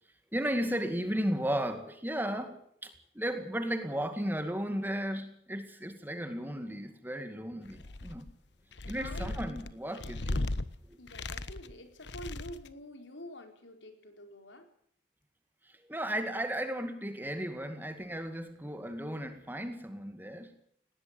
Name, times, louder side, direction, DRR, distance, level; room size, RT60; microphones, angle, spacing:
voice 1, 0.3-8.3 8.9-10.5 10.9-11.0 15.6-20.6, equal, 10° right, 8 dB, 2.2 m, -35 dB
sound 1, 7.7-8.3 8.7-10.6 11.1-11.7 12.0-12.7, left 2 dB, 70° left, 1.2 m, -36 dB
voice 2, 8.8-9.3 11.0-14.7, equal, 85° left, 6 dB, 4.3 m, -47 dB
19.5 x 17.5 x 8.9 m, 0.65 s
head